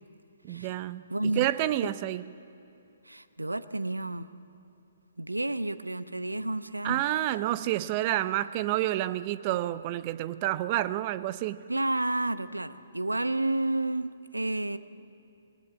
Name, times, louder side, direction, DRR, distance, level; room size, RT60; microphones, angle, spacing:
voice 1, 0.4-1.0 1.4-2.2 6.8-11.6, right 14 dB, 30° right, 15 dB, 0.6 m, -29 dB
voice 2, 1.1-1.5 1.8-1.9 3.0-4.3 5.2-7.0 11.7-14.8, right 2 dB, 85° right, 14 dB, 0.8 m, -30 dB
19.5 x 19.0 x 7.6 m, 2.7 s
figure-of-eight pair, 130°, 0 cm